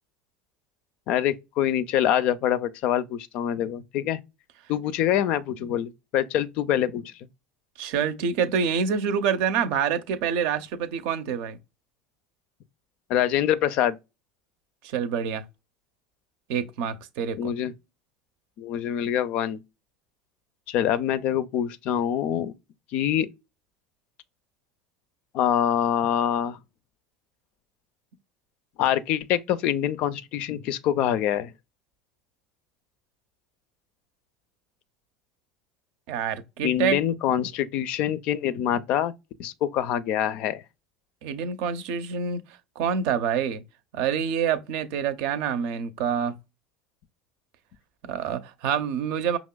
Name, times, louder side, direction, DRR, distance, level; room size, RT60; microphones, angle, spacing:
voice 1, 1.1-4.2 4.7-7.1 13.1-14.0 17.4-17.7 18.6-19.6 20.7-22.5 22.9-23.3 25.3-26.6 28.8-31.5 36.6-39.1 39.4-40.6, left 10 dB, 55° left, 0.4 m, -25 dB
voice 2, 7.8-11.6 14.8-15.4 16.5-17.5 36.1-37.0 41.2-42.4 42.8-43.6 43.9-46.3 48.0-49.4, right 7 dB, 65° right, 0.6 m, -26 dB
5.2 x 2.9 x 2.2 m
hypercardioid pair, 80°, 2 cm